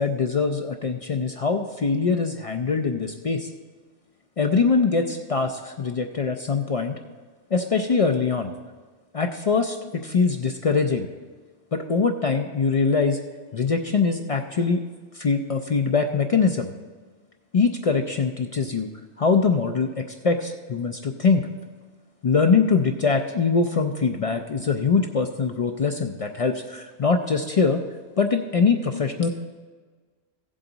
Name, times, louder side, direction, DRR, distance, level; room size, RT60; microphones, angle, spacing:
voice 1, 0.0-3.5 4.4-6.9 7.5-8.5 9.1-9.8 10.0-11.1 11.7-13.2 13.5-14.8 15.1-16.7 17.5-18.9 19.2-21.5 22.2-27.8 28.2-29.3, left 4 dB, 65° left, 5 dB, 0.3 m, -23 dB
15.0 x 7.4 x 4.0 m, 1.4 s
omnidirectional pair, 1.3 m